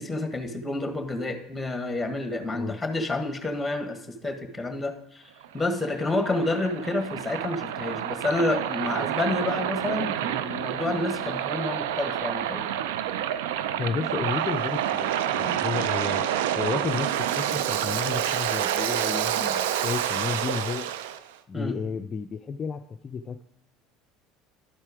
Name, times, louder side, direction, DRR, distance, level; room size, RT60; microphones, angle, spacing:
voice 1, 0.0-12.6 21.5-21.8, left 2 dB, 10° left, 6 dB, 1.4 m, -29 dB
Waves surf, 5.4-21.2, right 10 dB, 85° right, 0.4 m, -28 dB
voice 2, 13.8-16.3 16.6-20.9 21.5-23.4, left 5 dB, 35° left, 6 dB, 0.4 m, -32 dB
11.5 x 4.4 x 4.9 m, 0.78 s
supercardioid pair, 95°, 0 cm